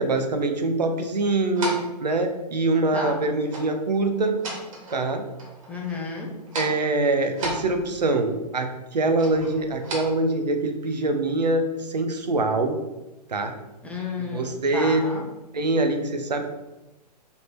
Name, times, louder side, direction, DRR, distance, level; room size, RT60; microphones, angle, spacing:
voice 1, 0.0-4.4 4.9-5.2 6.5-12.8 13.3-13.5 14.3-15.0 15.5-16.4, right 2 dB, 75° right, 7 dB, 0.6 m, -24 dB
sound 1, 1.6-2.0 3.5-3.7 4.1-5.1 5.4-6.1 6.4-6.8 7.3-8.2 9.2-9.9, right 1 dB, 50° right, 1.3 m, -35 dB
voice 2, 5.7-6.3 13.8-15.2, left 4 dB, 5° left, -2 dB, 0.5 m, -32 dB
3.5 x 2.8 x 4.3 m, 1.0 s
figure-of-eight pair, 110°, 21 cm